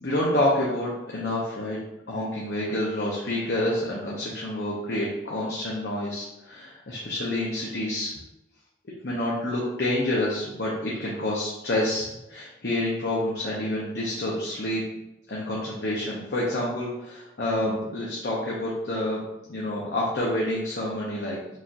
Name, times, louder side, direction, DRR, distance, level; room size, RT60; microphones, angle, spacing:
voice 1, 0.0-1.8 2.1-8.1 9.0-14.8 15.3-19.2 19.5-21.4, left 1 dB, 70° left, -5 dB, 0.8 m, -28 dB
4.8 x 2.8 x 2.5 m, 0.92 s
head